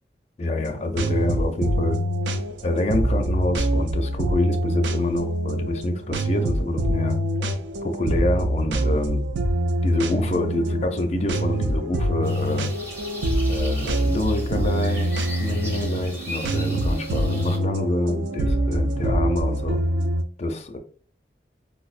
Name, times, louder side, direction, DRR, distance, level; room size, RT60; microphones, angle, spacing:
voice 1, 0.4-2.0 2.6-7.2 7.8-9.2 9.8-12.7 13.5-19.8 20.4-20.8, left 1 dB, 40° left, 5 dB, 0.4 m, -26 dB
sound 1, 0.6-20.2, right 1 dB, 90° right, 0.4 m, -25 dB
sound 2, 12.2-17.6, equal, 15° right, 0.6 m, -38 dB
4.5 x 2.0 x 2.4 m, 0.43 s
head